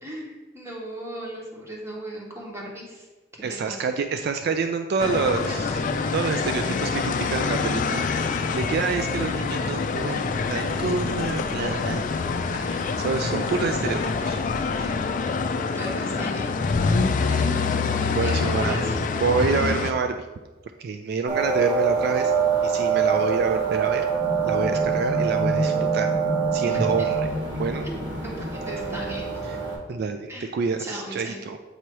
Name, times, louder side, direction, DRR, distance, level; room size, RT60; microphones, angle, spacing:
voice 1, 0.0-3.1 3.5-3.8 8.4-8.5 12.5-12.9 14.7-15.0 15.5-16.5 17.3-17.6 18.2-19.0 26.7-27.1 27.8-29.3 30.3-30.5 30.8-31.4, equal, 15° right, -3 dB, 1.4 m, -36 dB
voice 2, 3.4-5.8 6.1-8.3 8.5-12.0 13.0-14.4 18.1-18.8 19.2-20.2 20.8-22.3 22.6-24.0 24.4-26.1 26.5-27.2 27.5-27.9 29.5-29.6 29.9-31.6, right 5 dB, 60° right, 6 dB, 0.3 m, -27 dB
sound 1, 5.0-19.9, left 4 dB, 45° left, 0.4 m, -26 dB
sound 2, 21.3-29.7, right 5 dB, 85° right, 1.6 m, -24 dB
8.0 x 2.9 x 4.6 m, 1.2 s
head